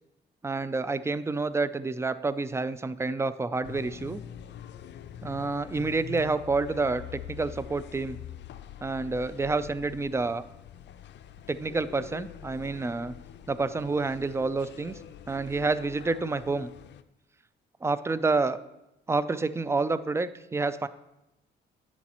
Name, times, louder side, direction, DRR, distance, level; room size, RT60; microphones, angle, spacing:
voice 1, 0.4-4.2 5.2-8.2 8.8-10.4 11.5-13.1 13.5-15.0 15.3-16.7 17.8-18.6 19.1-20.9, right 3 dB, 15° right, 15 dB, 0.4 m, -28 dB
sound 1, 3.6-17.0, left 10 dB, 60° left, 0.5 m, -45 dB
10.5 x 7.1 x 3.0 m, 0.93 s
cardioid pair, 90°, 20 cm